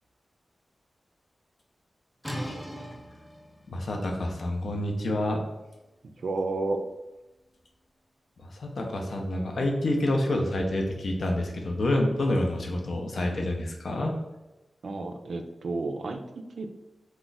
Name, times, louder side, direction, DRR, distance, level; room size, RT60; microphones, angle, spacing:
sound 1, 2.2-7.9, equal, 5° left, 0.4 m, -43 dB
voice 1, 3.7-5.4 8.4-14.1, left 1 dB, 70° left, 1 dB, 0.5 m, -28 dB
voice 2, 6.2-6.8 14.8-16.7, right 3 dB, 70° right, 5 dB, 0.3 m, -31 dB
2.3 x 2.1 x 3.9 m, 1.0 s
wide cardioid pair, 130°, 0 cm